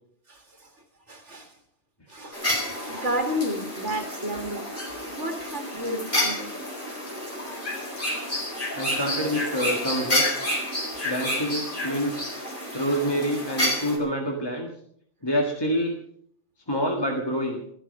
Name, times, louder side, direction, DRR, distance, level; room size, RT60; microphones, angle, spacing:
voice 1, 0.3-0.7 1.1-1.6 2.1-4.7 5.0-6.5, equal, 75° right, 4 dB, 2.2 m, -32 dB
sound 1, 2.3-14.0, left 1 dB, 45° left, 4.6 m, -29 dB
voice 2, 8.8-10.5 11.0-12.1 12.7-14.7 15.2-16.0 16.7-17.6, equal, 20° left, 0 dB, 1.8 m, -27 dB
16.0 x 13.5 x 5.4 m, 0.65 s
omnidirectional pair, 1.2 m